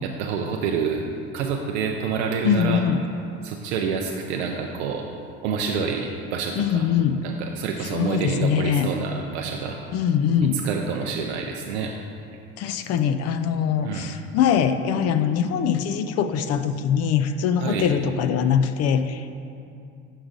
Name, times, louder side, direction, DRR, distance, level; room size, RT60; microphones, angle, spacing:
voice 1, 0.0-1.0 1.3-2.8 3.4-5.1 5.4-6.9 7.2-9.8 10.5-11.9 13.8-14.1 17.6-17.9, right 6 dB, 90° right, 2 dB, 0.5 m, -28 dB
voice 2, 2.4-3.0 6.6-7.3 7.8-8.9 9.9-10.6 12.6-19.3, left 8 dB, 50° left, 10 dB, 0.4 m, -22 dB
6.4 x 4.8 x 3.8 m, 2.5 s
supercardioid pair, 80°, 32 cm